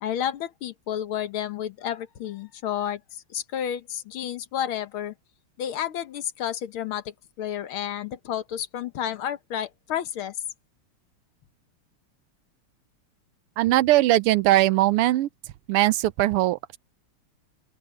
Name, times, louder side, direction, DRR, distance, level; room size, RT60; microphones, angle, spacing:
voice 1, 0.0-5.1 5.6-10.4, left 10 dB, 70° left, 1.9 m, -31 dB
voice 2, 13.6-15.3 15.7-16.8, right 15 dB, 90° right, 1.7 m, -20 dB
open air
omnidirectional pair, 2.4 m